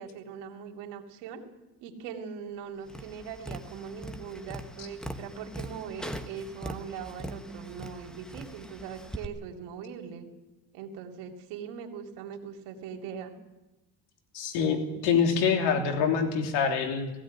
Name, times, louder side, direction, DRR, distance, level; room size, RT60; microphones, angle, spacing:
voice 1, 0.0-1.4 1.8-10.3 10.7-13.3, right 7 dB, 90° right, 3 dB, 3.1 m, -41 dB
Tap, 2.9-9.3, equal, ahead, 1.2 m, -41 dB
voice 2, 14.3-17.1, left 6 dB, 90° left, 5 dB, 3.2 m, -25 dB
18.5 x 16.5 x 9.7 m, 1.0 s
cardioid pair, 130°, 40 cm